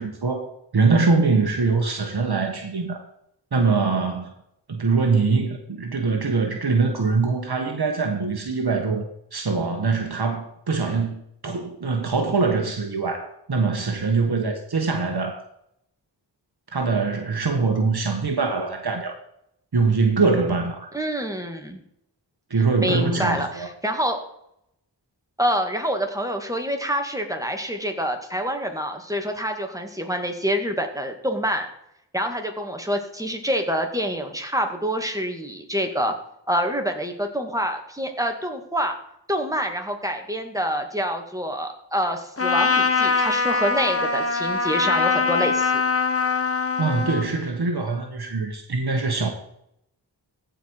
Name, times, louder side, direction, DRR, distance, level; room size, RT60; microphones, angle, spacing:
voice 1, 0.0-3.0 3.5-4.3 4.7-15.4 16.7-19.1 19.7-20.9 22.5-23.7 46.8-49.3, right 4 dB, 60° right, 3 dB, 1.4 m, -23 dB
voice 2, 20.9-21.8 22.8-24.2 25.4-31.7 32.1-36.1 36.5-38.9 39.3-45.8, equal, 10° right, 4 dB, 2.1 m, -26 dB
Trumpet, 42.4-47.3, left 5 dB, 30° left, 1.3 m, -22 dB
15.0 x 5.2 x 4.7 m, 0.76 s
wide cardioid pair, 50°, 43 cm